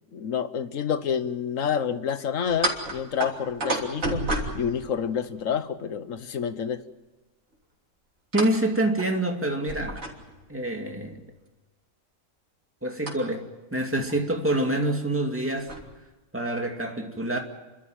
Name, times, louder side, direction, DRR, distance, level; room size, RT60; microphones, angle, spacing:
voice 1, 0.1-4.2 4.5-6.8, left 7 dB, 70° left, 1.4 m, -28 dB
sound 1, 2.5-5.5 8.3-8.6 9.0-9.1 9.7-10.5 13.0-13.1 14.1-14.2 14.5-14.6 15.3-15.9, right 2 dB, 70° right, 3.6 m, -31 dB
voice 2, 8.3-10.1 10.5-11.2 12.8-13.5 13.7-15.7 16.3-17.4, right 1 dB, 10° right, 2.3 m, -26 dB
30.0 x 13.0 x 9.0 m
omnidirectional pair, 1.4 m